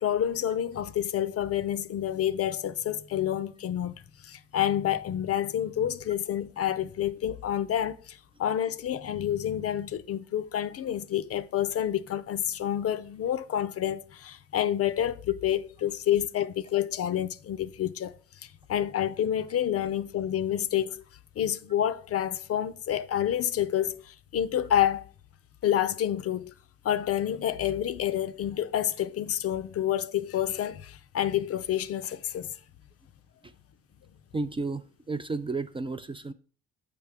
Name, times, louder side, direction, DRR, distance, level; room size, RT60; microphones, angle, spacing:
voice 1, 0.0-18.1 18.4-21.0 21.4-25.0 25.6-26.5 26.8-32.5, left 10 dB, 50° left, 0.5 m, -28 dB
voice 2, 34.3-36.3, right 3 dB, 20° right, 0.3 m, -33 dB
6.7 x 5.4 x 3.4 m
cardioid pair, 90°, 30 cm